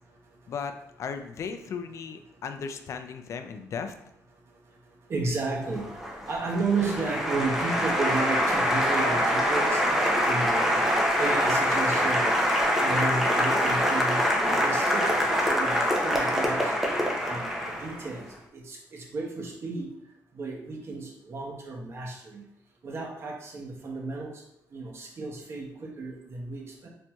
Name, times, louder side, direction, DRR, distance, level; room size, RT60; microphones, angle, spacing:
voice 1, 1.0-3.9, left 6 dB, 50° left, 7 dB, 0.3 m, -36 dB
voice 2, 5.1-5.9 6.3-9.8 10.3-14.3 14.6-16.7 17.3-18.3 18.5-19.9 20.3-22.4 22.8-24.4 24.7-26.9, right 3 dB, 40° right, -1 dB, 0.8 m, -33 dB
Applause, 5.7-18.2, equal, 5° right, 0.5 m, -25 dB
4.2 x 2.6 x 2.3 m, 0.78 s
cardioid pair, 120°, 6 cm